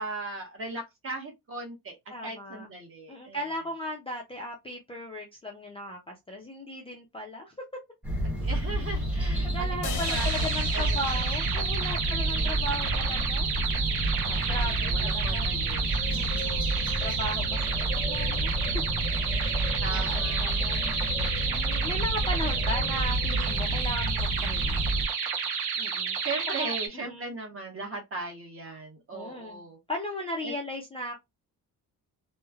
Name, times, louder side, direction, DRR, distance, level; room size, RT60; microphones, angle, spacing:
voice 1, 0.0-2.0 2.2-3.4 8.4-9.5 9.8-10.3 10.7-10.8 11.1-11.3 12.1-13.3 14.2-15.9 16.4-17.1 19.8-20.6 26.2-29.8 30.4-30.5, right 2 dB, 35° right, 0.9 m, -38 dB
voice 2, 2.1-2.7 3.1-7.5 9.5-15.6 16.1-16.6 17.0-18.8 19.3-20.9 21.5-24.9 25.8-26.2 26.6-27.3 29.1-31.2, left 1 dB, 15° left, 0.4 m, -37 dB
sound 1, 8.0-25.1, right 1 dB, 5° right, 0.9 m, -29 dB
sound 2, 9.8-13.1, left 5 dB, 55° left, 0.6 m, -40 dB
sound 3, 10.0-26.9, right 6 dB, 85° right, 0.7 m, -31 dB
3.1 x 2.1 x 2.3 m
cardioid pair, 170°, 37 cm